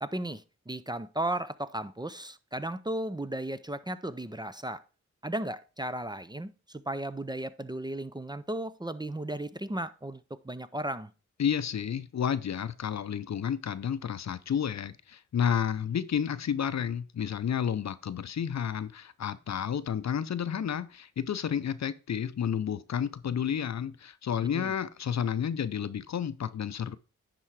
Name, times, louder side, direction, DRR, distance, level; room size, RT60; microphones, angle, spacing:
voice 1, 0.0-4.8 5.2-11.1 24.5-24.7, right 1 dB, 15° right, 0.5 m, -35 dB
voice 2, 11.4-27.0, left 8 dB, 60° left, 0.6 m, -31 dB
9.9 x 3.8 x 4.7 m
cardioid pair, 45°, 31 cm